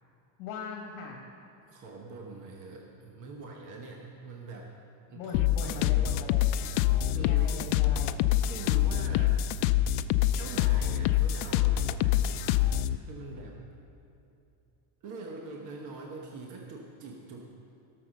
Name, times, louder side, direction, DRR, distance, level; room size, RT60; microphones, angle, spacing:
voice 1, 0.4-1.2 5.1-6.4 7.1-8.1, left 4 dB, 55° left, 1 dB, 1.5 m, -40 dB
voice 2, 1.7-4.7 5.1-6.1 7.0-7.6 8.5-9.4 10.4-12.7 13.0-13.6 15.0-17.4, right 3 dB, 40° right, 0 dB, 1.1 m, -44 dB
sound 1, 5.3-13.0, left 12 dB, 75° left, 0.6 m, -25 dB
16.5 x 6.6 x 6.4 m, 2.8 s
cardioid pair, 175°, 47 cm